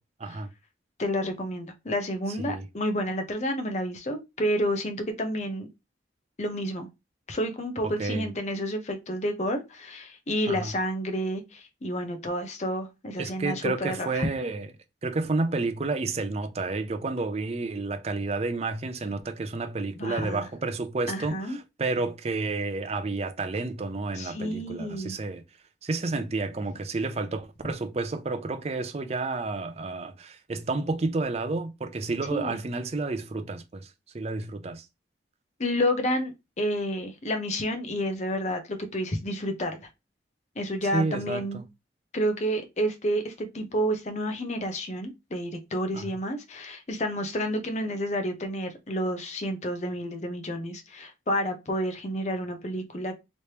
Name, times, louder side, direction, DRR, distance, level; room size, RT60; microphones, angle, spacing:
voice 1, 1.0-5.7 6.4-6.9 7.3-14.3 19.9-20.4 21.1-21.6 24.2-25.1 32.3-32.6 35.6-39.8 40.6-41.6 42.1-53.1, equal, 40° left, 0.7 m, -30 dB
voice 2, 2.3-2.7 7.8-8.3 10.5-10.7 13.2-14.7 15.0-25.4 25.8-34.9 40.9-41.6 45.9-46.2, right 3 dB, 35° right, 0.5 m, -30 dB
3.2 x 3.1 x 2.8 m
head